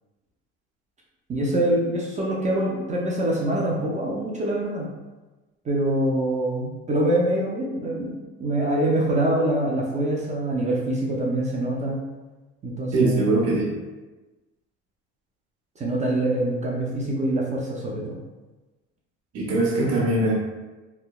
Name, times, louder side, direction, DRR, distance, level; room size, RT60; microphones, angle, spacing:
voice 1, 1.3-4.9 5.6-8.1 8.4-12.0 12.6-13.3 15.8-18.2, right 1 dB, 25° right, -3 dB, 0.4 m, -24 dB
voice 2, 12.9-13.7 19.3-20.3, right 2 dB, 50° right, -3 dB, 0.8 m, -21 dB
2.7 x 2.1 x 2.3 m, 1.2 s
supercardioid pair, 95°, 31 cm